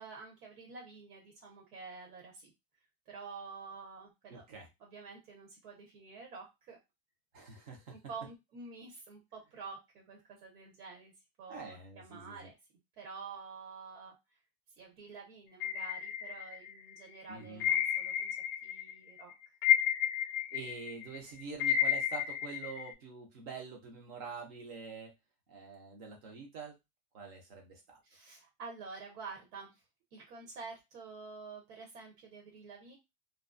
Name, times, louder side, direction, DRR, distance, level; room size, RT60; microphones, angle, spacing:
voice 1, 0.0-2.5 3.1-4.4 4.8-6.8 7.9-11.1 11.4-12.6 13.0-14.1 14.8-18.3 18.6-19.5 28.1-29.8 30.1-33.0, right 4 dB, 80° right, 0 dB, 1.1 m, -48 dB
voice 2, 4.3-4.7 7.3-8.0 11.5-12.5 17.3-17.7 20.5-25.2 25.5-26.7 27.1-28.0, right 5 dB, 30° right, 3 dB, 0.4 m, -46 dB
sound 1, 15.6-16.9 17.6-18.9 19.2-22.9, left 9 dB, 65° left, 0.6 m, -31 dB
2.3 x 2.2 x 2.4 m, 0.22 s
supercardioid pair, 170°, 45 cm